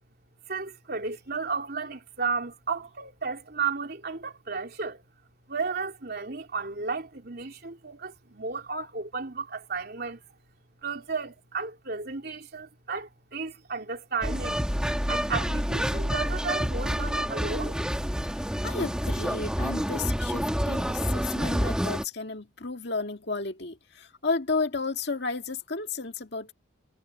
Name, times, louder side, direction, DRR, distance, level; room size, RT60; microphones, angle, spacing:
voice 1, 0.5-5.0 5.5-10.2 10.8-14.6 15.1-17.8, right 4 dB, 50° right, 3.5 m, -33 dB
sound 1, 14.2-22.0, equal, 5° right, 2.7 m, -28 dB
voice 2, 18.3-26.5, left 3 dB, 55° left, 2.0 m, -33 dB
head